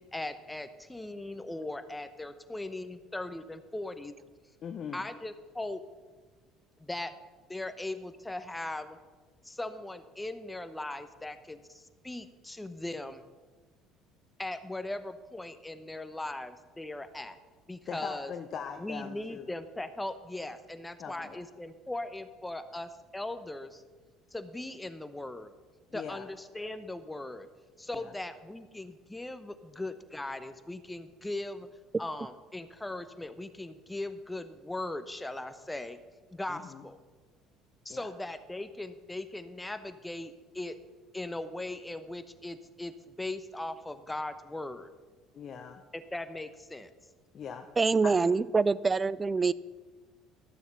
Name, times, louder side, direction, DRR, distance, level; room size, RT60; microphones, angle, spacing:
voice 1, 0.0-4.1 4.9-5.8 6.8-7.1 7.5-9.0 9.4-11.6 12.0-13.1 14.4-17.3 17.7-18.3 18.8-23.8 24.3-25.5 25.9-27.5 27.8-31.7 32.0-36.0 36.3-37.0 37.8-40.8 41.1-44.9 45.9-46.9, left 2 dB, 10° left, 0.9 m, -39 dB
voice 2, 4.6-5.0 17.9-19.5 21.0-21.4 25.9-26.3 27.9-28.1 36.5-36.8 37.9-38.1 45.3-45.8 47.3-47.7 48.0-48.3, left 7 dB, 50° left, 0.7 m, -41 dB
voice 3, 47.8-49.5, right 4 dB, 25° right, 0.3 m, -25 dB
12.5 x 7.1 x 5.7 m
supercardioid pair, 85°, 0 cm